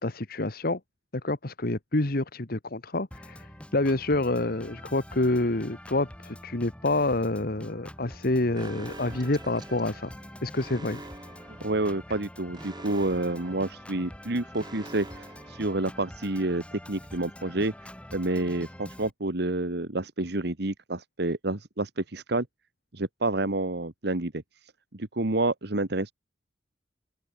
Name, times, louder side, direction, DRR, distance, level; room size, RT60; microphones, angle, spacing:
voice 1, 0.0-0.8 1.2-10.1 10.4-11.1, left 2 dB, 60° left, 1.7 m, -28 dB
Organ, 3.1-19.1, equal, 5° left, 2.7 m, -46 dB
Alarm, 8.5-16.3, right 2 dB, 25° right, 6.3 m, -46 dB
voice 2, 11.6-22.5 22.9-24.3 24.6-26.1, right 2 dB, 65° right, 1.7 m, -29 dB
open air
head